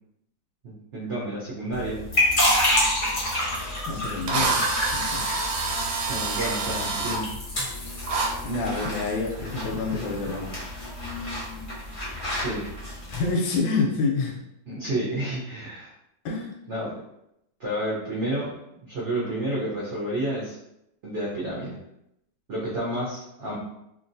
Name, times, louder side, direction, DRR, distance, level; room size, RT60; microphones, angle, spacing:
voice 1, 0.6-2.0 6.1-7.3 12.4-12.6 14.7-15.9 16.7-16.9 17.6-18.5 18.8-20.6 21.0-21.8 22.5-23.6, right 1 dB, 60° right, -7 dB, 0.7 m, -30 dB
sound 1, 1.7-13.3, left 1 dB, 35° left, 0.8 m, -29 dB
Drill, 3.6-3.7 4.3-7.2 8.1-8.3, right 3 dB, 80° right, 1.2 m, -27 dB
voice 2, 3.8-4.7 4.9-5.2 8.4-10.5 13.1-14.3 16.2-16.5, left 3 dB, 85° left, 1 dB, 1.4 m, -27 dB
2.9 x 2.7 x 2.6 m, 0.82 s
omnidirectional pair, 2.1 m